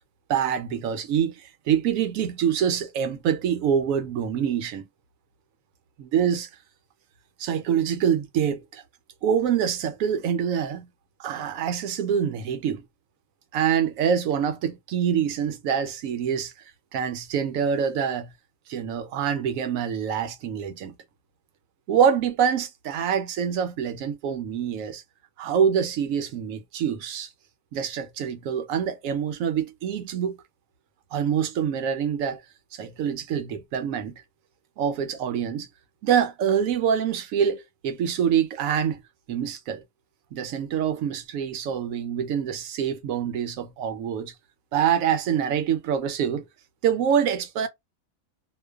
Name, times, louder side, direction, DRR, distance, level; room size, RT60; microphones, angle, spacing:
voice 1, 0.3-4.9 6.0-6.5 7.4-8.8 9.2-10.9 11.2-12.9 13.5-16.5 16.9-18.3 18.7-20.9 21.9-25.0 25.4-27.3 27.7-30.4 31.1-32.4 32.7-34.2 34.8-35.7 36.0-39.0 39.3-39.8 40.3-44.3 44.7-46.4 46.8-47.7, right 8 dB, 75° right, 0.9 m, -25 dB
2.5 x 2.1 x 2.3 m
omnidirectional pair, 1.5 m